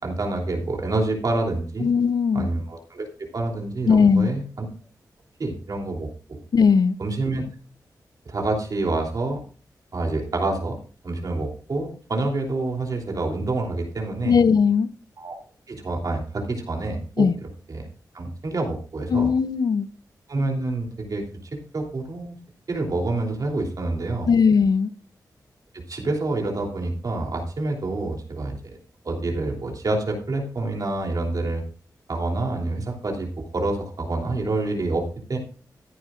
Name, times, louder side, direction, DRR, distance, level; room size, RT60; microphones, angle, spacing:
voice 1, 0.0-1.9 2.3-3.1 3.3-4.6 5.4-6.4 7.0-7.4 8.2-9.4 9.9-10.8 11.0-14.4 15.2-15.4 15.7-17.9 18.1-19.3 20.3-21.2 21.5-22.4 22.7-24.3 25.7-28.7 29.0-31.6 32.1-35.4, right 2 dB, 60° right, 3.1 m, -27 dB
voice 2, 1.8-2.5 3.9-4.3 6.5-7.0 14.2-14.9 17.2-17.3 19.1-19.9 24.3-24.9, left 5 dB, 65° left, 0.6 m, -18 dB
14.5 x 10.0 x 2.5 m
wide cardioid pair, 80°, 7 cm